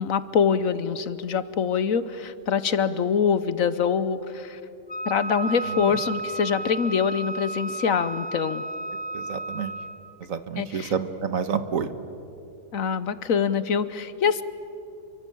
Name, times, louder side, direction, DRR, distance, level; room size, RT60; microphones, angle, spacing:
voice 1, 0.0-4.6 5.1-8.6 10.6-10.9 12.7-14.4, left 6 dB, 60° left, 14 dB, 1.2 m, -24 dB
Wind instrument woodwind instrument, 4.9-10.1, right 2 dB, 10° left, 0.6 m, -33 dB
voice 2, 5.6-6.0 9.1-9.7 10.2-11.9, right 6 dB, 60° right, 11 dB, 1.5 m, -29 dB
29.0 x 23.5 x 8.6 m, 2.8 s
omnidirectional pair, 1.7 m